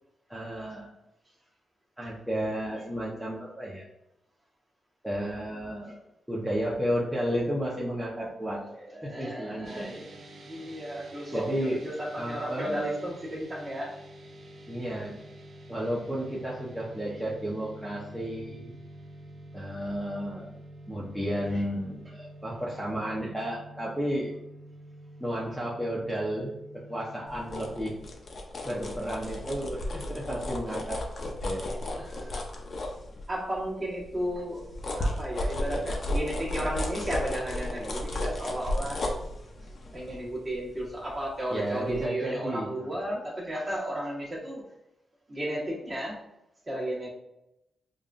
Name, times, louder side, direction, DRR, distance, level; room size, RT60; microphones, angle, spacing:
voice 1, 0.3-0.9 2.0-3.8 5.0-6.0 6.3-10.0 11.3-11.8 12.2-12.8 14.7-15.2 15.7-18.7 19.5-20.6 20.9-24.3 25.2-26.5 26.9-28.0 28.6-31.0 31.4-31.6 31.9-32.0 41.5-42.9, equal, ahead, -7 dB, 0.7 m, -32 dB
voice 2, 8.5-10.1 10.5-13.9 17.1-17.2 21.5-21.6 31.9-32.4 33.3-34.7 34.9-39.0 39.9-44.6 45.3-46.2 46.7-47.1, right 1 dB, 30° right, -5 dB, 1.3 m, -34 dB
sound 1, 9.6-28.0, right 1 dB, 60° right, 0.6 m, -48 dB
sound 2, 27.3-33.6 34.0-41.5 41.9-42.0, left 1 dB, 50° left, 0.6 m, -34 dB
5.3 x 2.2 x 2.5 m, 0.88 s
wide cardioid pair, 120°, 0 cm